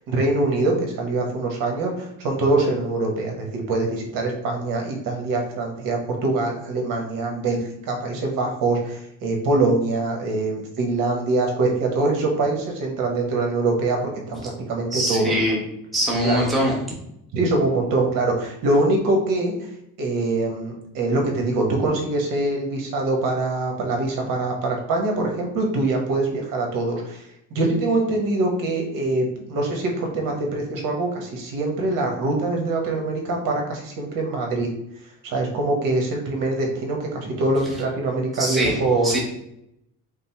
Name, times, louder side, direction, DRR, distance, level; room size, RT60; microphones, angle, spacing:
voice 1, 0.1-15.3 16.2-16.4 17.3-19.5 20.0-34.7 35.2-39.1, right 2 dB, 70° right, 1 dB, 1.2 m, -24 dB
voice 2, 14.9-15.6 15.9-16.8 38.3-39.2, equal, ahead, -4 dB, 0.9 m, -23 dB
5.2 x 2.1 x 4.3 m, 0.79 s
cardioid pair, 155°, 35 cm